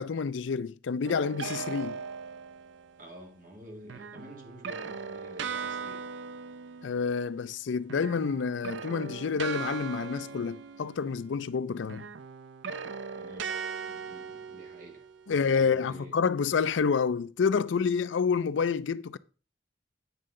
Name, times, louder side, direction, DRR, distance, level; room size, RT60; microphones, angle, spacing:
voice 1, 0.0-2.0 6.8-12.1 15.3-19.2, left 5 dB, 75° left, 0.4 m, -28 dB
sound 1, 1.0-2.9 3.9-7.6 7.8-11.5 11.9-15.3, right 5 dB, 75° right, 0.5 m, -39 dB
voice 2, 3.0-6.0 13.1-13.5 13.8-16.2, equal, 45° right, 2.3 m, -50 dB
9.3 x 5.4 x 3.7 m
head